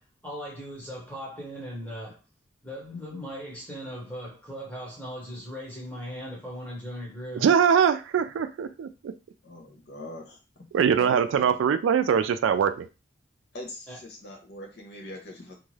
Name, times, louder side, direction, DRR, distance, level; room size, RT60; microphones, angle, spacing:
voice 1, 0.0-2.2 2.6-7.5 13.9-14.0, equal, 10° left, 1.0 m, -38 dB
voice 2, 7.4-9.1 10.7-12.9, right 7 dB, 90° right, 0.3 m, -22 dB
voice 3, 9.4-10.4 11.0-11.6 13.5-15.6, left 1 dB, 60° left, 0.7 m, -41 dB
2.6 x 2.4 x 3.1 m
head